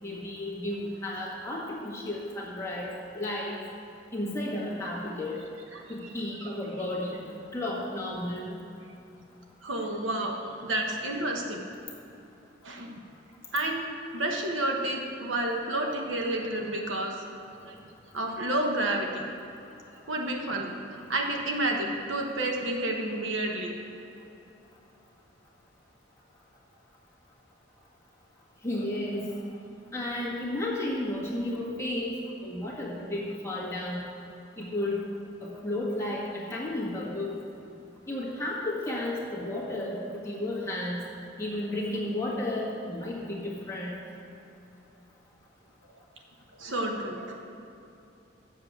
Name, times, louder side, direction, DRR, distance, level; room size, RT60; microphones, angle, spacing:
voice 1, 0.0-3.6 4.1-5.5 5.9-8.6 28.6-29.3 29.9-34.0 34.6-35.0 35.4-37.4 38.1-41.1 41.4-43.9, left 1 dB, 15° left, -5 dB, 1.7 m, -33 dB
voice 2, 5.7-6.1 6.4-6.5 9.6-10.4 10.6-11.6 12.6-12.9 13.5-13.9 14.1-17.2 17.6-17.8 18.1-19.3 20.1-23.7 46.6-47.4, right 1 dB, 75° right, 1 dB, 1.2 m, -30 dB
7.4 x 6.9 x 7.5 m, 2.8 s
head